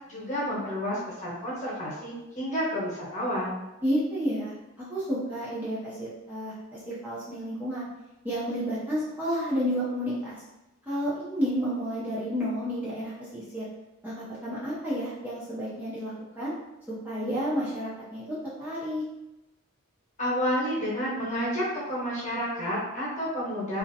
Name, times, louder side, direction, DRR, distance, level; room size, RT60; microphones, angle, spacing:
voice 1, 0.1-3.6 20.2-23.8, equal, 35° left, -8 dB, 1.0 m, -30 dB
voice 2, 3.8-7.9 8.2-10.4 10.9-13.7 14.0-16.5 17.0-19.0, equal, 10° right, -10 dB, 0.5 m, -31 dB
2.5 x 2.0 x 2.6 m, 0.98 s
head